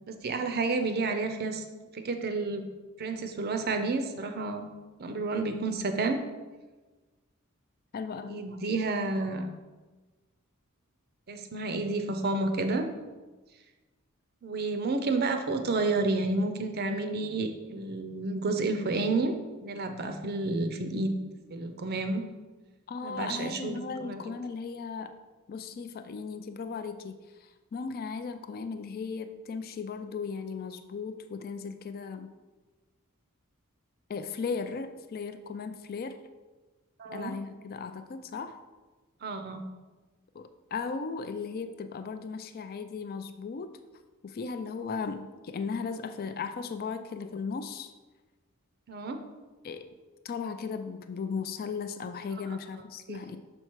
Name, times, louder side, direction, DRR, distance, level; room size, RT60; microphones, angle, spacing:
voice 1, 0.1-1.6 1.9-2.6 3.0-4.7 5.0-6.2 8.3-9.5 11.3-12.9 14.4-19.3 19.6-21.1 21.5-22.2 23.0-23.8 24.0-24.2 37.0-37.3 39.2-39.6 48.9-49.2 53.1-53.2, right 3 dB, 45° right, 7 dB, 0.5 m, -30 dB
voice 2, 7.9-8.5 22.9-25.2 25.5-32.3 34.1-36.2 37.1-38.6 40.3-43.7 44.2-47.9 49.6-49.9 50.2-53.4, left 5 dB, 45° left, 9 dB, 0.4 m, -36 dB
6.5 x 4.4 x 4.6 m, 1.3 s
head